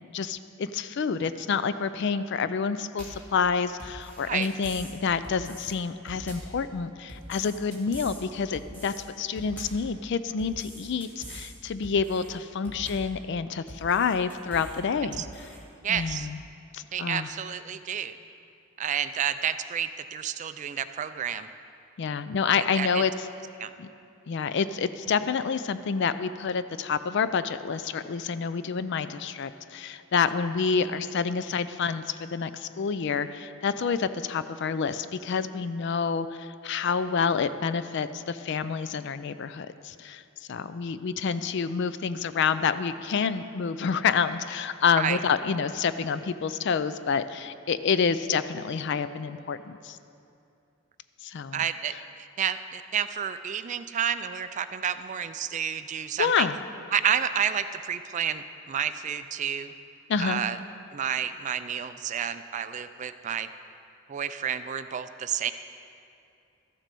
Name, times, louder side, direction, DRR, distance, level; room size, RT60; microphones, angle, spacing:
voice 1, 0.0-15.2 15.9-16.4 16.7-17.3 22.0-23.1 23.8-23.9 24.3-40.2 40.5-50.0 51.2-51.6 56.2-56.5 60.1-60.4, left 6 dB, 55° left, 13 dB, 0.4 m, -28 dB
sound 1, 3.0-3.3 3.8-4.9 5.2-5.7 6.1-6.6 7.1-8.2 8.5-9.0 9.4-9.9 10.4-11.5 11.8-12.3 12.7-13.2 13.7-14.8 15.1-15.6 15.9-16.1, equal, 10° left, 1.9 m, -43 dB
voice 2, 15.8-16.3 16.9-18.2 18.8-21.5 22.6-23.0 23.6-23.7 45.0-45.2 51.5-51.9 52.4-56.5 56.9-59.7 60.2-60.6 60.9-63.5 64.1-65.5, right 8 dB, 35° right, 11 dB, 0.3 m, -30 dB
13.5 x 7.4 x 5.3 m, 2.6 s
head